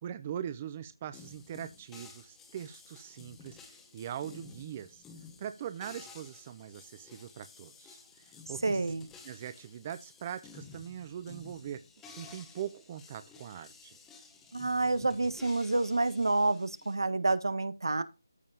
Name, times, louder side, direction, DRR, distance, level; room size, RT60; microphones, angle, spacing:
voice 1, 0.0-5.0 5.4-8.8 9.2-11.8 12.1-14.0, right 9 dB, 15° right, 0.4 m, -41 dB
sound 1, 1.1-17.0, left 4 dB, 5° left, 0.9 m, -53 dB
voice 2, 8.6-9.1 14.5-18.0, right 2 dB, 80° right, 1.3 m, -28 dB
14.0 x 5.4 x 2.7 m
figure-of-eight pair, 175°, 2 cm